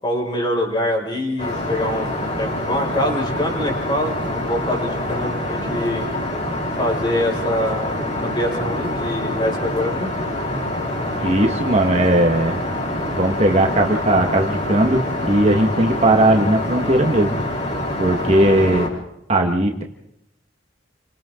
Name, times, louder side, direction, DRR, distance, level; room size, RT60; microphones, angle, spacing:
voice 1, 0.0-6.1 6.8-10.1, left 1 dB, 25° left, 0 dB, 6.3 m, -24 dB
Aircraft, 1.4-18.9, left 1 dB, 40° left, 7.5 m, -26 dB
voice 2, 11.2-12.6 13.1-17.4 18.0-18.9 19.3-19.8, right 1 dB, 35° right, 3 dB, 1.8 m, -18 dB
30.0 x 25.5 x 3.9 m, 0.79 s
head